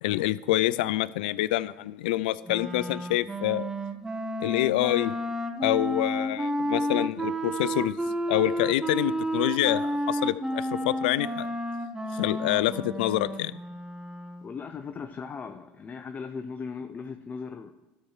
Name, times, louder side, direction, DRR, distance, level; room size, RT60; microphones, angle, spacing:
voice 1, 0.0-3.7 4.4-5.1 5.6-8.0 8.3-11.5 12.1-13.5, left 15 dB, 85° left, 18 dB, 0.3 m, -27 dB
Wind instrument woodwind instrument, 2.5-14.5, equal, 15° right, 1.1 m, -31 dB
voice 2, 14.4-17.7, left 5 dB, 35° left, 6 dB, 0.7 m, -38 dB
13.0 x 4.4 x 6.5 m, 1.1 s
supercardioid pair, 85°, 5 cm